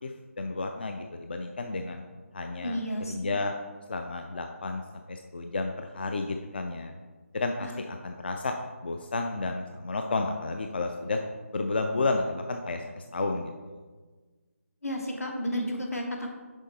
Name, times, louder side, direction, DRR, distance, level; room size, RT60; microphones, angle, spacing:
voice 1, 0.0-2.0 2.3-2.8 3.1-3.6 3.9-4.8 5.1-6.9 7.3-8.5 8.8-11.2 11.5-13.8, left 3 dB, 45° left, 4 dB, 0.4 m, -31 dB
voice 2, 2.6-3.3 7.6-7.7 14.8-16.3, equal, 80° left, 1 dB, 1.4 m, -32 dB
6.2 x 4.5 x 4.1 m, 1.4 s
figure-of-eight pair, 165°, 8 cm